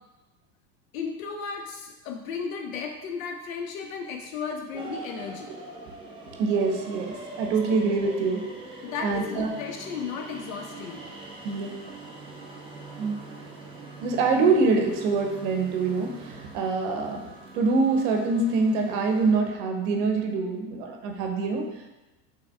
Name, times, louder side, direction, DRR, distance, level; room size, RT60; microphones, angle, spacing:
voice 1, 0.9-5.5 8.8-11.0 11.7-11.8 13.3-13.4, left 5 dB, 55° left, 3 dB, 0.6 m, -34 dB
sound 1, 4.7-19.4, right 2 dB, 10° right, 0.6 m, -43 dB
voice 2, 6.4-8.4 9.0-9.5 11.4-11.8 13.0-13.2 14.0-17.2 17.5-21.7, right 4 dB, 50° right, 3 dB, 0.9 m, -25 dB
5.8 x 3.4 x 2.3 m, 1.0 s
figure-of-eight pair, 80°, 49 cm